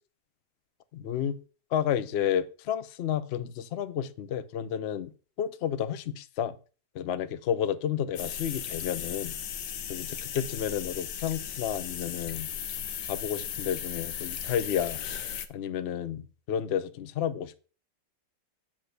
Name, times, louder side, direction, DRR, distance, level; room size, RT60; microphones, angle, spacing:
voice 1, 0.9-1.4 1.7-5.1 5.4-6.6 6.9-9.4 9.9-12.5 13.1-15.0 15.5-17.6, left 9 dB, 70° left, 0.6 m, -31 dB
sound 1, 8.2-15.5, left 9 dB, 85° left, 1.5 m, -36 dB
9.9 x 3.6 x 6.6 m
omnidirectional pair, 1.9 m